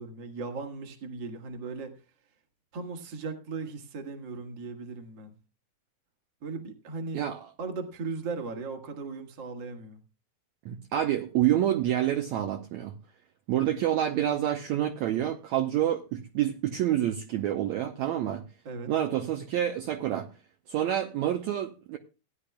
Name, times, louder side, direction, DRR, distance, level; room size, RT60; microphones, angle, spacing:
voice 1, 0.0-2.0 2.7-5.3 6.4-7.2 7.6-10.0 18.6-18.9, right 4 dB, 45° right, 4 dB, 1.6 m, -37 dB
voice 2, 10.6-12.9 13.5-18.4 18.9-20.3 20.7-22.0, right 11 dB, 75° right, 5 dB, 1.7 m, -28 dB
18.5 x 10.0 x 2.2 m, 0.32 s
omnidirectional pair, 4.1 m